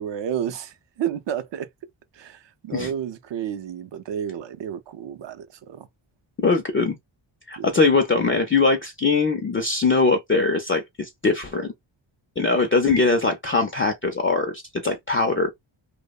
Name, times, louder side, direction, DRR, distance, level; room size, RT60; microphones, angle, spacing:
voice 1, 0.0-1.7 2.2-5.9 7.6-7.7, right 9 dB, 65° right, 0.5 m, -31 dB
voice 2, 6.4-7.0 7.5-11.7 12.4-15.5, left 4 dB, 30° left, 0.3 m, -21 dB
2.8 x 2.0 x 2.3 m
wide cardioid pair, 155°, 47 cm